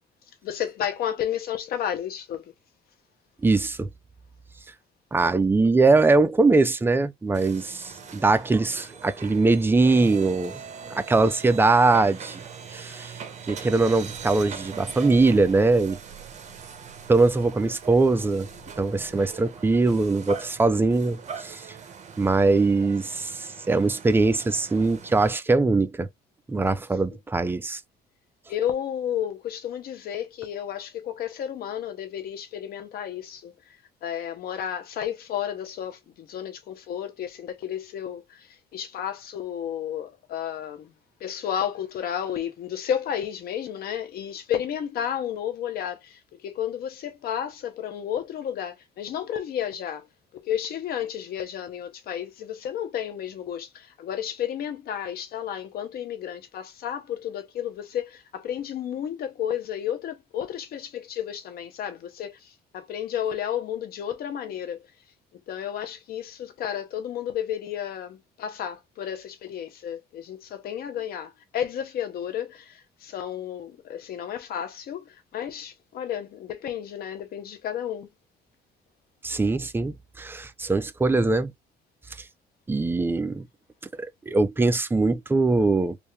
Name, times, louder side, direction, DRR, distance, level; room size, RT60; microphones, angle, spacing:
voice 1, 0.4-2.4 28.5-40.9 41.2-50.1 50.3-64.8 65.5-78.1, left 9 dB, 65° left, 0.9 m, -32 dB
voice 2, 3.4-3.9 5.1-10.6 10.9-12.4 12.7-13.1 13.5-16.0 17.1-18.5 18.8-21.6 22.2-26.1 26.5-27.8 79.2-81.5 82.7-83.5 84.0-86.0, right 3 dB, 15° right, 0.4 m, -22 dB
sound 1, 7.3-25.3, right 6 dB, 45° right, 1.1 m, -41 dB
3.4 x 2.6 x 3.2 m
cardioid pair, 110°, 17 cm